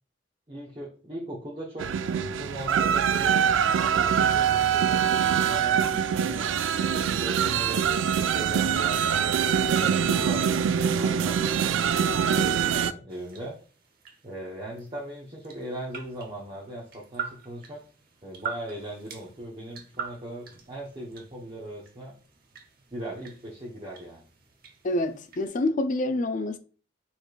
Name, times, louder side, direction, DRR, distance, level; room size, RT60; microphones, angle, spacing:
voice 1, 0.5-1.9 2.4-5.1 5.5-10.6 11.0-13.6 14.2-17.8 18.2-22.1 22.9-24.2, right 1 dB, 30° right, 0.9 m, -39 dB
sound 1, 1.8-12.9, right 8 dB, 85° right, 0.3 m, -24 dB
sound 2, 13.1-25.5, right 7 dB, 50° right, 0.9 m, -44 dB
voice 2, 24.8-26.6, left 2 dB, 45° left, 0.4 m, -27 dB
4.9 x 4.3 x 2.3 m
head